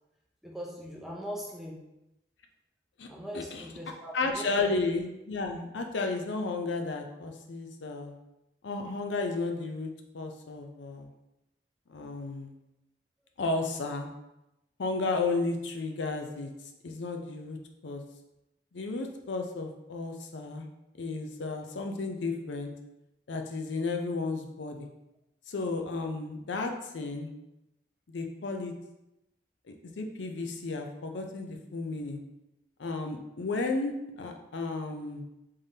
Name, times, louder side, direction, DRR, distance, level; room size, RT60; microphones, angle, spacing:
voice 1, 0.4-1.8 3.1-4.8, equal, ahead, -3 dB, 0.6 m, -40 dB
voice 2, 3.3-3.7 4.1-8.1 8.6-11.1 11.9-12.5 13.4-14.1 14.8-16.5 16.8-17.6 17.8-18.0 18.7-20.7 21.0-22.7 23.3-24.9 25.5-27.3 28.1-28.7 30.0-32.2 32.8-35.2, left 3 dB, 85° left, 4 dB, 0.5 m, -33 dB
3.7 x 3.4 x 2.7 m, 0.91 s
head